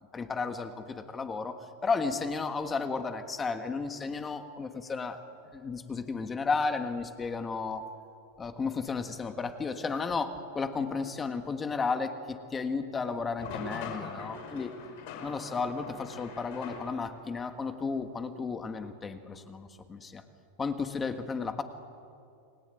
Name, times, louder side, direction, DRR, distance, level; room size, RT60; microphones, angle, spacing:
voice 1, 0.1-5.2 5.5-7.8 8.4-14.7 15.2-20.2 20.6-21.6, left 4 dB, 15° left, 8 dB, 1.6 m, -33 dB
sound 1, 13.4-17.3, left 5 dB, 55° left, 5.6 m, -42 dB
30.0 x 21.0 x 9.2 m, 2.4 s
supercardioid pair, 160°, 0 cm